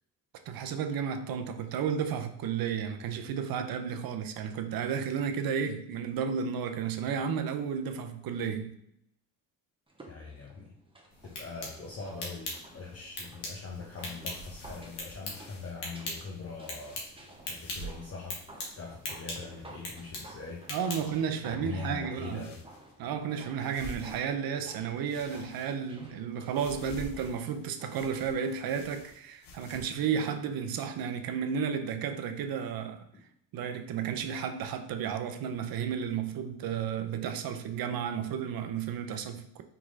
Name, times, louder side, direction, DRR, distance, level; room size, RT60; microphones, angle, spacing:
voice 1, 0.5-8.8 20.7-22.5 23.0-33.0 33.5-39.6, right 7 dB, 65° right, 0.6 m, -33 dB
sound 1, 9.9-28.7 29.0-29.1, right 1 dB, 15° right, 1.0 m, -53 dB
voice 2, 10.1-10.8 11.2-20.7 21.4-22.6 33.1-33.2, left 4 dB, 40° left, 0.8 m, -42 dB
sound 2, 11.1-21.3, left 2 dB, 80° left, 1.4 m, -42 dB
sound 3, 13.7-15.8 16.6-17.1 17.5-18.1 18.4-18.5 19.0-19.6 20.6-21.3 22.1-23.0 23.5-24.7 25.1-26.1 26.5-30.0, right 1 dB, 60° left, 0.9 m, -49 dB
3.7 x 3.0 x 3.8 m
supercardioid pair, 65°, 39 cm